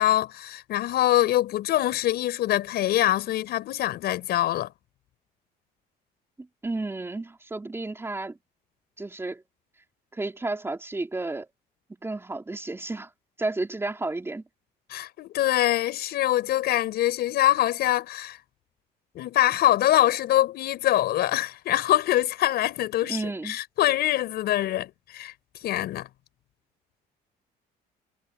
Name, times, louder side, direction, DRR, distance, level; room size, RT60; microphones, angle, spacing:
voice 1, 0.0-4.7 14.9-18.4 19.1-25.3 25.6-26.1, left 14 dB, 70° left, 5.9 m, -24 dB
voice 2, 6.6-8.4 9.0-9.4 10.1-11.5 12.0-13.1 13.4-14.4 23.1-23.6, right 2 dB, 15° right, 4.1 m, -32 dB
cardioid pair, 110°, 17 cm